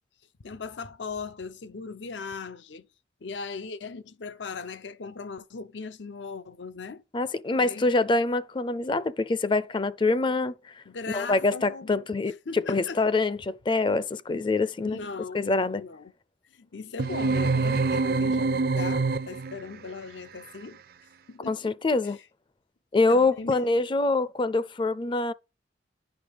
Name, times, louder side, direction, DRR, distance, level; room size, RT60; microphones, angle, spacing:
voice 1, 0.4-2.9 3.2-7.0 7.5-7.9 10.9-12.0 12.5-13.2 14.8-16.1 16.5-20.8 21.3-21.7 22.0-22.1 23.1-23.8, left 4 dB, 90° left, 0.7 m, -38 dB
voice 2, 7.1-15.0 15.3-15.8 21.5-22.2 22.9-25.3, left 3 dB, 25° left, 0.4 m, -25 dB
sound 1, 17.0-19.6, right 3 dB, 55° right, 0.4 m, -25 dB
10.5 x 5.1 x 5.1 m
head